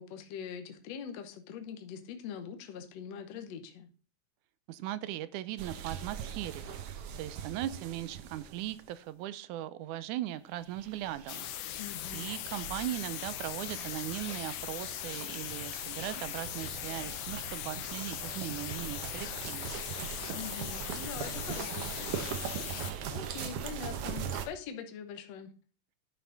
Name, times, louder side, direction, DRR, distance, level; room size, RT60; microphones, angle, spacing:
voice 1, 0.0-3.9 11.8-12.3 20.3-22.7 23.1-25.5, left 7 dB, 65° left, 6 dB, 1.9 m, -43 dB
voice 2, 4.7-11.4 11.7-19.7, right 13 dB, 80° right, 15 dB, 2.1 m, -39 dB
sound 1, 5.6-8.9 10.7-24.5, right 8 dB, 65° right, 1.5 m, -41 dB
sound 2, 11.3-22.9, left 16 dB, 85° left, 2.1 m, -40 dB
11.0 x 5.7 x 3.9 m, 0.38 s
omnidirectional pair, 3.5 m